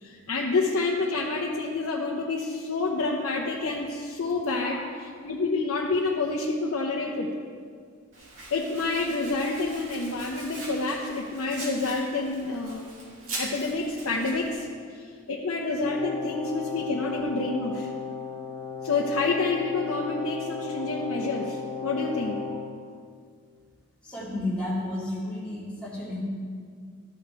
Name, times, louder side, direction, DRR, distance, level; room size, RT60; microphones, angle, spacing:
voice 1, 0.0-4.8 5.2-7.3 8.5-12.9 13.4-17.9 18.8-22.4, left 3 dB, 75° left, -2 dB, 0.7 m, -28 dB
Domestic sounds home sounds, 8.1-14.5, right 2 dB, 60° right, 2.2 m, -41 dB
Brass instrument, 15.8-22.7, left 6 dB, 30° left, 2.0 m, -35 dB
voice 2, 24.0-26.2, left 1 dB, 5° left, -8 dB, 2.1 m, -32 dB
13.0 x 5.0 x 4.5 m, 2.1 s
head